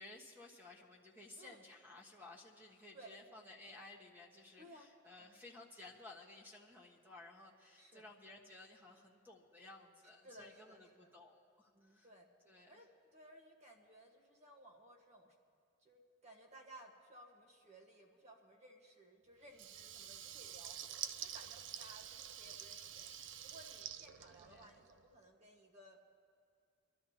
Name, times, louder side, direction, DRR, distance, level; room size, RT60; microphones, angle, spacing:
voice 1, 0.0-12.1 12.4-12.8 24.4-24.8, left 2 dB, 10° right, 1 dB, 1.3 m, -56 dB
voice 2, 2.9-3.2 4.6-4.9 5.2-5.4 7.8-8.1 10.2-11.1 11.7-12.3 12.7-15.3 15.8-20.8 21.1-23.1 23.4-26.0, right 1 dB, 35° right, 2 dB, 1.4 m, -59 dB
Water tap faucet / Liquid, 19.5-25.0, right 10 dB, 65° right, 0.4 m, -48 dB
25.0 x 12.5 x 2.8 m, 2.4 s
head